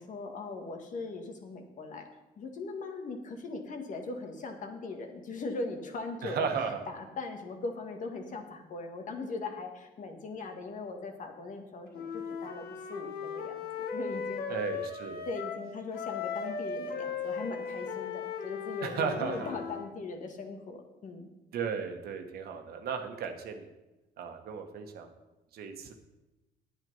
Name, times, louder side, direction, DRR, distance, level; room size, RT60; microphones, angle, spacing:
voice 1, 0.0-2.1 2.4-6.5 6.9-14.4 15.3-21.3, left 3 dB, 50° left, 4 dB, 1.9 m, -39 dB
voice 2, 6.2-6.8 14.5-15.2 18.8-19.5 21.5-23.7 24.2-25.1 25.5-25.9, right 6 dB, 65° right, 5 dB, 1.5 m, -35 dB
Wind instrument woodwind instrument, 11.9-15.7 15.9-19.9, left 6 dB, 65° left, 1.3 m, -37 dB
9.5 x 9.4 x 5.5 m, 1.0 s
cardioid pair, 110°, 17 cm